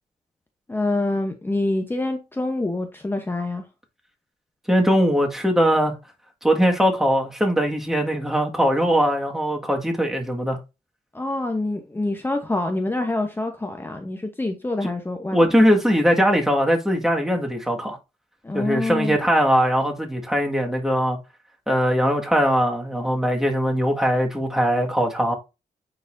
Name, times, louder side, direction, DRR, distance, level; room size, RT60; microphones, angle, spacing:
voice 1, 0.7-3.6 11.1-15.5 18.4-19.2, left 2 dB, 15° left, 0.9 m, -26 dB
voice 2, 4.7-5.9 6.4-10.6 14.8-14.9 15.3-18.0 18.5-21.2 21.7-25.4, equal, 5° right, 1.8 m, -20 dB
9.3 x 4.0 x 2.6 m
cardioid pair, 80°, 15 cm